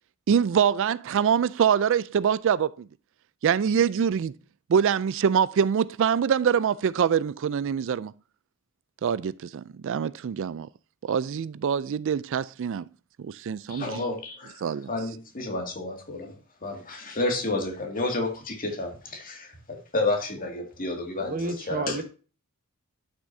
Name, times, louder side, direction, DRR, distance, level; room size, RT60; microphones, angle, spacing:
voice 1, 0.3-2.9 3.4-4.3 4.7-8.1 9.0-10.7 11.1-12.8 13.2-14.0 14.6-14.9, right 7 dB, 60° right, 0.3 m, -24 dB
voice 2, 13.7-14.6 14.9-22.0, left 2 dB, 40° left, 2.2 m, -31 dB
voice 3, 21.2-22.0, right 2 dB, 40° right, 1.2 m, -30 dB
11.5 x 6.2 x 2.7 m
head